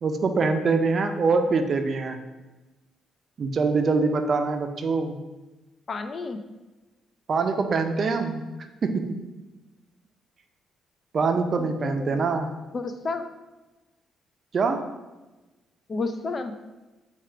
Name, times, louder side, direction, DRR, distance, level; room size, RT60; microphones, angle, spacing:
voice 1, 0.0-2.2 3.4-5.2 7.3-8.4 8.8-9.2 11.1-12.5 14.5-14.8, right 4 dB, 50° right, 7 dB, 0.5 m, -24 dB
voice 2, 5.9-6.4 11.6-12.2 12.7-13.3 15.9-16.5, left 3 dB, 45° left, 9 dB, 0.4 m, -31 dB
4.3 x 2.4 x 4.8 m, 1.1 s
hypercardioid pair, 50°, 0 cm